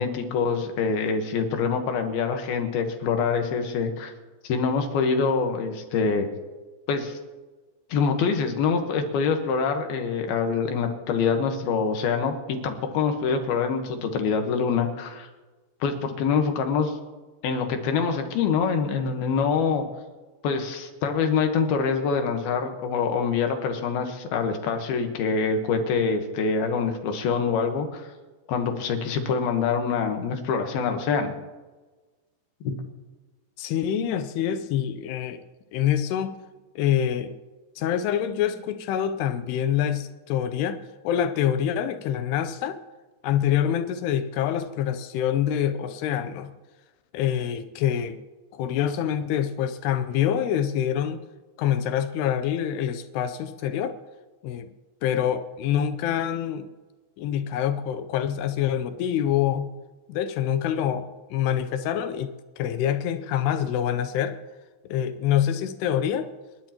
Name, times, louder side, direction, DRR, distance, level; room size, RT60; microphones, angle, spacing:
voice 1, 0.0-4.1 4.4-6.3 6.9-7.2 7.9-15.3 15.8-16.9 17.4-19.8 20.4-28.1 28.5-31.3 32.6-32.7, left 5 dB, 65° left, 5 dB, 2.7 m, -25 dB
voice 2, 33.6-35.4 35.7-36.4 36.8-37.3 37.8-42.8 43.2-46.5 47.1-48.2 48.5-51.2 51.6-53.9 54.4-54.7 55.0-56.7 57.2-59.7 60.1-64.4 64.9-66.3, left 10 dB, 85° left, 9 dB, 2.3 m, -26 dB
29.5 x 11.5 x 3.0 m, 1.2 s
omnidirectional pair, 5.6 m